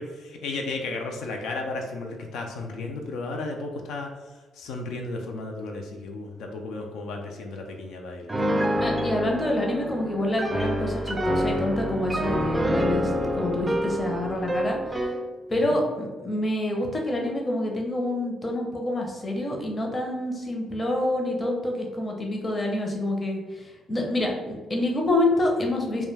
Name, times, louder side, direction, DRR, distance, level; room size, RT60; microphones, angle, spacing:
voice 1, 0.0-4.1 4.6-8.3 15.7-15.8, left 3 dB, 85° left, 2 dB, 0.3 m, -34 dB
Piano, 8.3-15.2, equal, 15° right, 0.3 m, -27 dB
voice 2, 8.8-15.1 15.5-26.1, left 1 dB, 30° left, 1 dB, 0.6 m, -27 dB
2.2 x 2.1 x 3.2 m, 1.3 s
cardioid pair, 90°, 0 cm